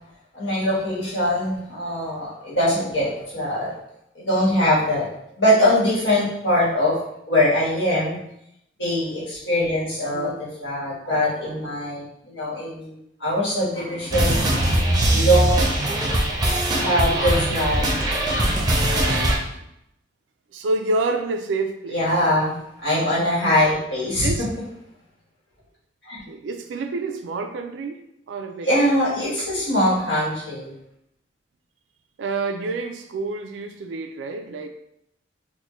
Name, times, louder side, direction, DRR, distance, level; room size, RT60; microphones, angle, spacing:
voice 1, 0.3-3.7 4.1-5.1 5.4-7.0 7.3-8.2 8.8-12.9 13.2-14.8 15.0-15.6 16.8-18.4 21.9-22.5 22.8-24.3 26.1-26.2 28.6-30.7, equal, 80° left, -7 dB, 1.4 m, -22 dB
sound 1, 14.1-19.4, right 1 dB, 20° right, 0.5 m, -21 dB
voice 2, 20.5-22.0 24.2-24.5 26.3-28.7 32.2-34.7, right 3 dB, 90° right, 5 dB, 0.3 m, -28 dB
4.3 x 2.1 x 3.0 m, 0.78 s
head